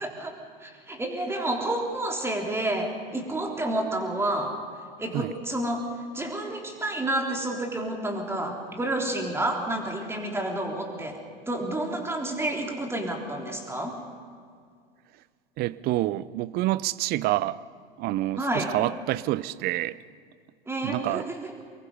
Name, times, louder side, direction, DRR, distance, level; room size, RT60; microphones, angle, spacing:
voice 1, 0.0-4.6 5.0-5.9 6.1-11.2 11.5-14.0 18.4-18.7 20.7-21.5, right 1 dB, 10° right, 3.5 m, -30 dB
voice 2, 15.6-17.6 18.0-20.0 20.8-21.2, right 16 dB, 35° right, 0.6 m, -27 dB
25.0 x 22.0 x 5.5 m
figure-of-eight pair, 90°, 29 cm